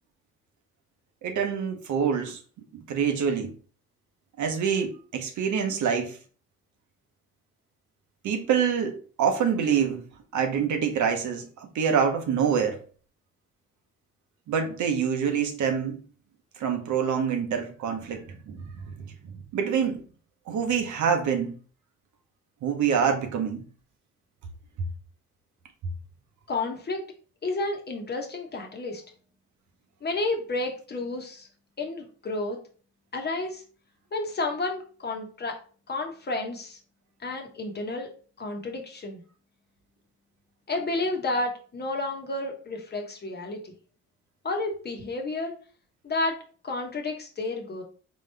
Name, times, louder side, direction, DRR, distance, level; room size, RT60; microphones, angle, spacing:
voice 1, 1.2-2.4 2.7-3.5 4.4-6.2 8.2-10.0 10.3-12.8 14.5-16.0 16.6-18.6 19.0-19.1 19.5-20.0 20.5-21.6 22.6-23.6, right 7 dB, 75° right, 0.9 m, -26 dB
voice 2, 26.5-27.0 27.4-29.0 30.0-31.5 31.8-32.6 33.1-33.6 34.1-35.6 35.9-36.8 37.2-38.1 38.4-39.2 40.7-43.7 44.4-45.6 46.0-46.4 46.6-47.8, left 2 dB, 35° left, 1.0 m, -31 dB
3.9 x 3.1 x 3.3 m
cardioid pair, 90°, 30 cm